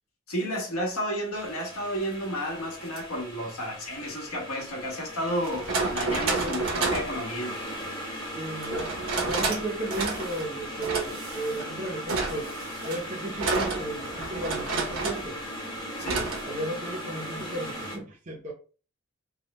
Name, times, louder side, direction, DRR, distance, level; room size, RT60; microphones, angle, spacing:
voice 1, 0.3-7.6 16.0-16.3, equal, 90° left, 1.3 m, -32 dB
sound 1, 1.3-18.0, equal, 20° left, 0.8 m, -38 dB
sound 2, 2.8-3.0 4.6-4.7 5.4-7.2 8.6-9.6 9.9-10.5 10.8-11.7 12.1-15.3 16.0-16.4, right 3 dB, 75° right, 1.0 m, -30 dB
voice 2, 6.2-6.7 8.4-12.5 12.9-15.4 16.4-18.5, right 1 dB, 35° right, 0.6 m, -34 dB
3.4 x 2.2 x 4.1 m
head